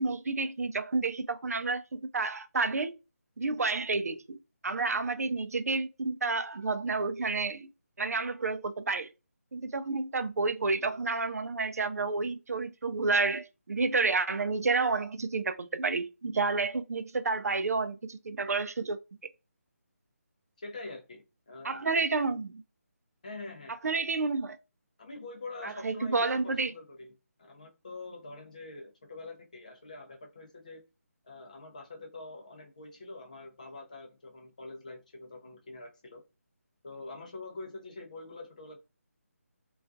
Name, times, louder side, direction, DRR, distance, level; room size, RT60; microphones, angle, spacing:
voice 1, 0.0-3.0 3.4-7.7 8.0-9.1 9.5-19.0 21.6-22.6 23.7-24.6 25.6-26.7, right 3 dB, 75° right, 0.4 m, -30 dB
voice 2, 20.6-21.8 23.2-23.7 25.0-27.1 27.4-30.8 31.2-36.2 36.8-38.8, left 2 dB, 30° left, 0.5 m, -45 dB
2.3 x 2.2 x 2.6 m
figure-of-eight pair, 175°, 8 cm